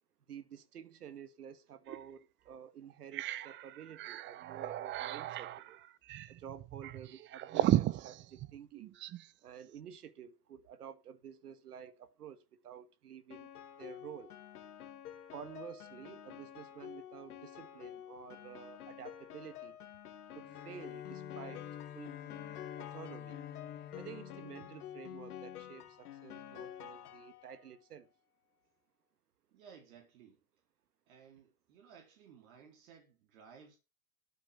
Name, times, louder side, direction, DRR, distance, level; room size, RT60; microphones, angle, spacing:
voice 1, 0.3-5.8 6.3-9.0 9.4-14.4 15.3-19.8 20.3-21.7 21.9-22.2 22.8-23.4 23.9-28.1, right 8 dB, 90° right, 1.7 m, -51 dB
sound 1, 1.9-2.0 2.5-2.6 2.9-9.3, right 14 dB, 25° right, 0.6 m, -36 dB
Piano, 13.3-27.7, left 10 dB, 80° left, 2.4 m, -49 dB
Bowed string instrument, 20.3-25.6, left 10 dB, 25° left, 1.1 m, -49 dB
voice 2, 29.5-30.4 31.1-33.8, right 7 dB, 65° right, 4.1 m, -58 dB
12.5 x 8.9 x 5.7 m
hypercardioid pair, 115°, 44 cm